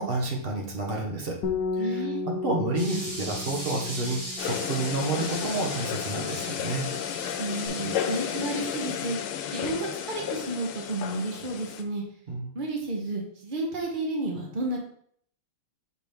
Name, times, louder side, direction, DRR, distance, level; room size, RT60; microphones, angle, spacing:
voice 1, 0.0-1.4 1.8-6.9 12.3-12.6, right 2 dB, 35° right, 0 dB, 1.0 m, -30 dB
Bass guitar, 1.4-7.7, left 4 dB, 60° left, 1.2 m, -36 dB
voice 2, 1.8-2.2 7.4-9.2 9.5-12.0 12.5-14.8, right 2 dB, 70° right, 0 dB, 0.4 m, -31 dB
sound 1, 2.8-9.1, equal, 10° right, 1.4 m, -39 dB
sound 2, 4.4-11.8, left 9 dB, 90° left, 1.5 m, -33 dB
6.0 x 4.9 x 3.5 m, 0.63 s
omnidirectional pair, 2.4 m